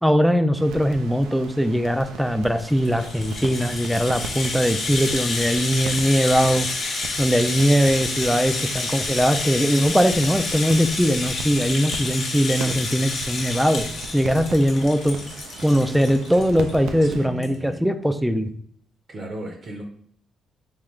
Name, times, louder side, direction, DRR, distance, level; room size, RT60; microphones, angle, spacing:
voice 1, 0.0-6.7 7.2-13.9 14.1-15.2 15.6-18.5, equal, 5° right, 9 dB, 0.4 m, -20 dB
sound 1, 0.5-17.3, right 5 dB, 90° right, 0.4 m, -38 dB
Rattle (instrument), 2.6-16.7 17.0-17.1 17.4-17.6, left 3 dB, 55° left, 0.9 m, -29 dB
voice 2, 8.3-8.8 17.0-17.9 19.1-19.8, equal, 45° right, 2 dB, 0.7 m, -36 dB
3.7 x 3.3 x 3.1 m, 0.63 s
cardioid pair, 90°, 0 cm